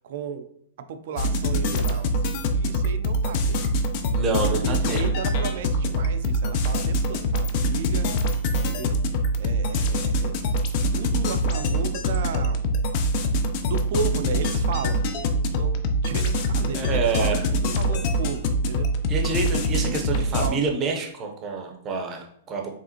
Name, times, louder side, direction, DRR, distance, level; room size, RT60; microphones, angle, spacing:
voice 1, 0.0-0.5 0.9-3.7 4.6-8.1 8.6-9.0 9.4-10.4 10.9-12.6 13.7-15.0 15.4-18.9 19.7-20.6, right 6 dB, 55° right, 9 dB, 0.5 m, -34 dB
sound 1, 1.2-20.5, equal, 40° left, 0.5 m, -24 dB
voice 2, 4.1-5.2 16.7-17.5 19.1-22.7, right 4 dB, 20° right, 2 dB, 0.7 m, -28 dB
5.0 x 3.3 x 2.9 m, 0.69 s
hypercardioid pair, 160°, 0 cm